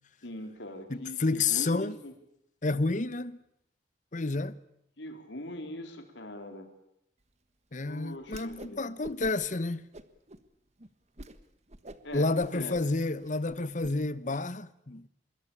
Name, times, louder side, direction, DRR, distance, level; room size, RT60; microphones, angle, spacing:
voice 1, 0.2-2.1 5.0-6.7 7.9-8.9 12.0-12.7, left 1 dB, 80° left, 4.0 m, -41 dB
voice 2, 0.9-2.0 2.6-3.4 4.1-4.6 7.7-9.8 12.1-15.1, left 3 dB, 45° left, 1.0 m, -30 dB
Whoosh swoosh swish, 8.3-8.8 9.0-9.5 9.9-10.4 10.8-10.9 11.2-11.4 11.7-13.9, right 1 dB, 40° right, 1.5 m, -46 dB
25.5 x 22.0 x 8.7 m
head